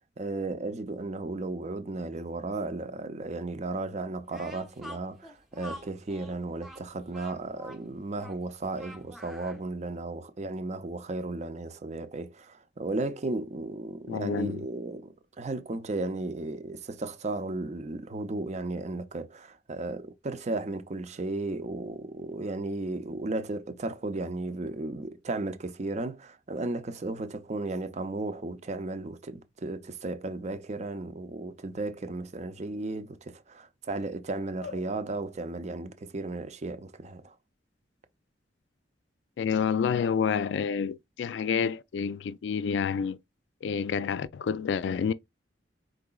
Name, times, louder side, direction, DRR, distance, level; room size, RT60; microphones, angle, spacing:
voice 1, 0.2-37.4, right 2 dB, 40° right, 0.5 m, -35 dB
Speech, 4.3-9.6, equal, ahead, 0.7 m, -47 dB
voice 2, 14.1-14.6 34.6-34.8 39.4-43.2 43.6-45.1, left 6 dB, 75° left, 0.3 m, -29 dB
4.7 x 3.8 x 2.3 m
head